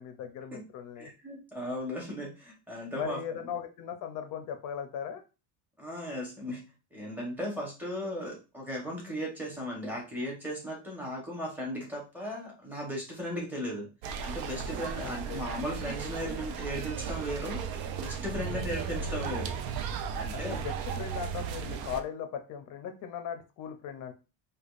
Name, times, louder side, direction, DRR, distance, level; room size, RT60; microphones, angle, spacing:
voice 1, 0.0-1.1 2.9-5.2 15.0-15.5 18.3-18.6 20.3-24.1, left 8 dB, 45° left, 7 dB, 0.6 m, -38 dB
voice 2, 1.0-3.2 5.8-6.6 6.9-13.9 14.2-17.6 18.0-19.6 20.1-20.6, equal, 5° right, -3 dB, 0.9 m, -36 dB
sound 1, 14.0-22.0, right 6 dB, 55° right, 0.5 m, -35 dB
4.9 x 2.3 x 2.4 m, 0.31 s
cardioid pair, 175°, 45 cm